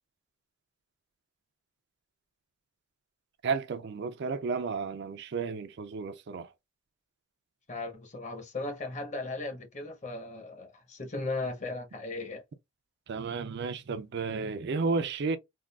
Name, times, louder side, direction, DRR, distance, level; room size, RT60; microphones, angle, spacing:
voice 1, 3.4-6.5 13.1-15.4, right 4 dB, 55° right, 0.4 m, -32 dB
voice 2, 7.7-12.4, left 2 dB, 35° left, 0.8 m, -37 dB
3.6 x 2.3 x 2.2 m
head